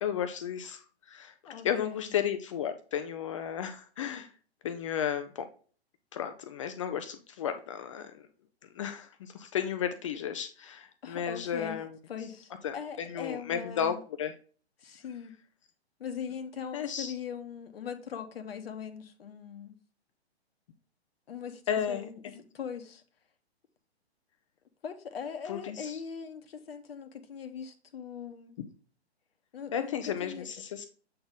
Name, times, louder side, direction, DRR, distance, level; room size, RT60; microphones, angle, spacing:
voice 1, 0.0-1.3 1.6-4.3 4.6-5.5 6.1-8.3 8.7-12.0 12.6-14.3 16.7-17.1 21.7-22.4 25.5-26.0 29.7-30.9, left 8 dB, 30° left, 0.4 m, -33 dB
voice 2, 1.5-2.1 11.0-11.8 12.1-14.0 14.8-15.3 16.0-19.7 21.3-22.2 22.5-23.0 24.8-28.6 29.5-30.5, left 7 dB, 60° left, 1.0 m, -40 dB
7.7 x 4.1 x 3.5 m
figure-of-eight pair, 125°, 33 cm